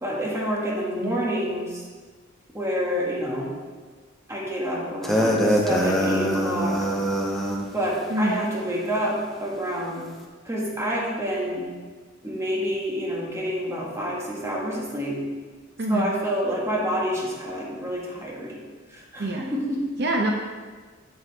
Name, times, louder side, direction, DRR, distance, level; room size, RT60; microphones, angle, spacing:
voice 1, 0.0-1.8 2.5-3.5 4.3-6.9 7.7-10.1 10.4-11.7 12.2-15.2 15.9-18.5 18.9-19.8, equal, 15° right, -4 dB, 1.5 m, -28 dB
sound 1, 5.0-7.7, equal, ahead, 0.8 m, -23 dB
voice 2, 8.1-8.4 15.8-16.1 19.2-19.5 20.0-20.3, right 1 dB, 60° right, 1 dB, 0.7 m, -25 dB
7.9 x 7.6 x 3.3 m, 1.4 s
head